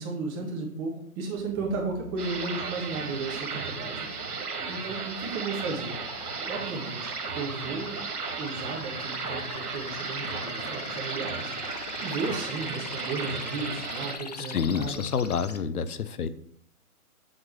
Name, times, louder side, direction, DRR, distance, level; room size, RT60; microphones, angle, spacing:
voice 1, 0.0-6.0 6.4-8.0 8.4-15.0, right 3 dB, 20° right, -1 dB, 1.7 m, -34 dB
sound 1, 1.4-15.6, left 4 dB, 30° left, 0.4 m, -43 dB
sound 2, 2.2-14.1, right 5 dB, 85° right, 1.9 m, -35 dB
voice 2, 14.5-16.3, left 6 dB, 80° left, 13 dB, 0.9 m, -28 dB
7.8 x 7.3 x 3.2 m, 0.64 s
hypercardioid pair, 150°, 44 cm